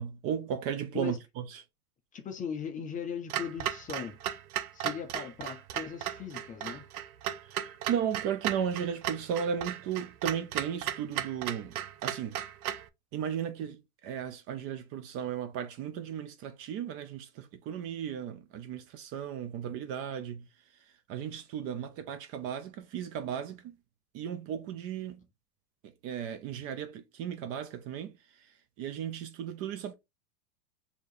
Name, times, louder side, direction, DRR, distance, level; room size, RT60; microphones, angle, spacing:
voice 1, 0.0-1.4 7.5-11.7 12.0-12.4 13.1-13.8 14.0-20.4 21.1-23.6 24.1-25.2 26.0-28.1 28.8-29.9, right 8 dB, 35° right, 0.5 m, -35 dB
voice 2, 2.1-4.2 4.7-6.9, left 7 dB, 20° left, 0.5 m, -38 dB
Clock, 3.3-12.9, right 11 dB, 75° right, 0.6 m, -36 dB
4.6 x 2.8 x 2.6 m
hypercardioid pair, 110°, 44 cm